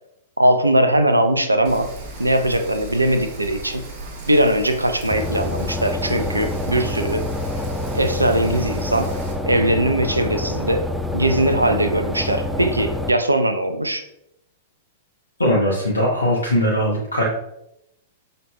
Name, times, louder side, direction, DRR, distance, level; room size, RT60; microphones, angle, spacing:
voice 1, 0.4-1.9 2.2-3.8 4.3-7.3 7.9-9.1 9.5-10.9 11.1-14.1, right 1 dB, 85° right, 7 dB, 0.5 m, -20 dB
Rain, 1.6-9.3, right 1 dB, 40° right, 1.2 m, -36 dB
sound 1, 5.1-13.1, left 1 dB, 5° right, 0.4 m, -27 dB
voice 2, 15.4-17.3, equal, 80° left, -2 dB, 0.8 m, -20 dB
5.5 x 3.9 x 2.2 m, 0.81 s
figure-of-eight pair, 100°, 0 cm